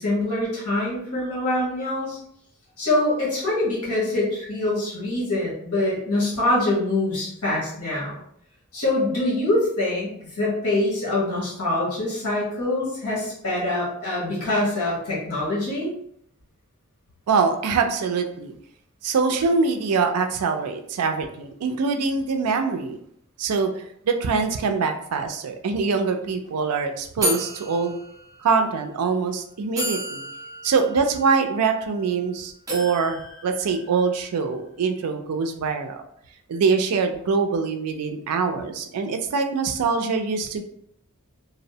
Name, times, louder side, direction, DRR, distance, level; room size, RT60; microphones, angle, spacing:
voice 1, 0.0-2.2 2.8-8.2 8.7-15.9, left 2 dB, 70° left, -6 dB, 1.1 m, -24 dB
voice 2, 17.3-18.5 19.0-23.0 23.4-28.0 28.4-30.2 30.6-36.0 36.5-40.6, right 5 dB, 80° right, 6 dB, 0.4 m, -24 dB
sound 1, 25.9-26.0 26.2-26.5 27.2-28.6 29.3-29.4 29.8-32.2 32.7-34.3, equal, 15° right, 0.6 m, -32 dB
2.6 x 2.0 x 2.7 m, 0.70 s
head